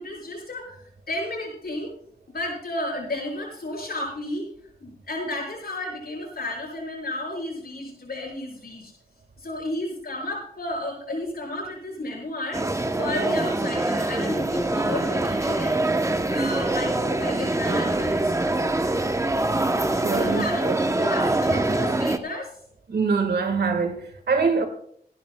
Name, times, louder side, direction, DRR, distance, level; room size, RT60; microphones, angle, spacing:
voice 1, 0.0-1.9 2.3-4.4 4.8-8.9 9.4-12.6 13.0-15.8 16.3-18.8 20.1-20.7 21.0-22.6, left 1 dB, 70° left, 7.1 m, -32 dB
sound 1, 12.5-22.2, right 2 dB, 20° right, 0.8 m, -24 dB
voice 2, 19.9-20.8 22.9-24.6, right 5 dB, 80° right, 1.6 m, -24 dB
27.0 x 11.0 x 2.2 m
wide cardioid pair, 110°, 16 cm